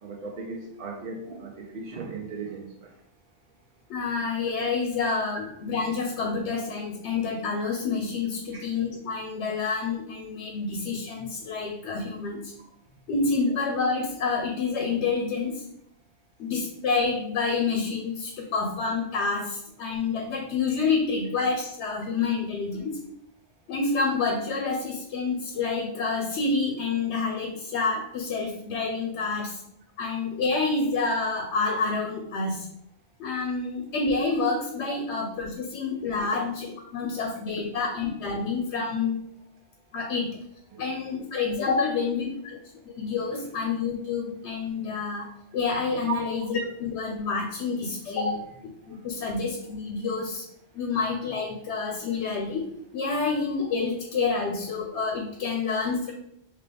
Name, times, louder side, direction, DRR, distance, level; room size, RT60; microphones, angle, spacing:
voice 1, 0.0-2.9 8.5-8.7 13.5-13.6 36.2-36.3 40.7-40.9 46.1-46.2 48.0-48.3 48.8-49.0 50.8-51.0 53.2-53.4, right 4 dB, 60° right, -1 dB, 0.7 m, -37 dB
voice 2, 3.9-12.5 13.1-15.6 16.4-23.0 23.7-29.6 30.0-32.7 33.2-39.2 39.9-40.4 40.8-42.6 42.9-45.3 45.5-48.3 48.9-50.5 50.7-52.7 52.9-56.1, left 4 dB, 90° left, 3 dB, 0.9 m, -28 dB
3.7 x 3.0 x 3.3 m, 0.75 s
omnidirectional pair, 1.1 m